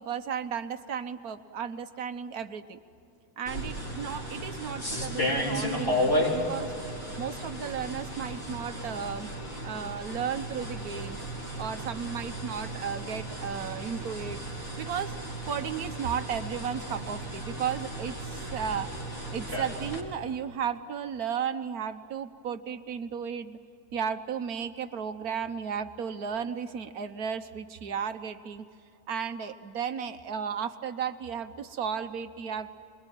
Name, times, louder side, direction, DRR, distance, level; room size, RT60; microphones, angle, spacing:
voice 1, 0.0-2.8 3.4-6.7 7.2-9.3 9.6-11.2 11.6-14.4 14.8-15.2 15.5-18.9 19.3-23.6 23.9-28.6 29.1-32.7, right 7 dB, 70° right, 10 dB, 1.5 m, -34 dB
sound 1, 3.5-20.0, equal, 35° left, 5.0 m, -34 dB
27.0 x 22.0 x 9.0 m, 2.5 s
omnidirectional pair, 1.7 m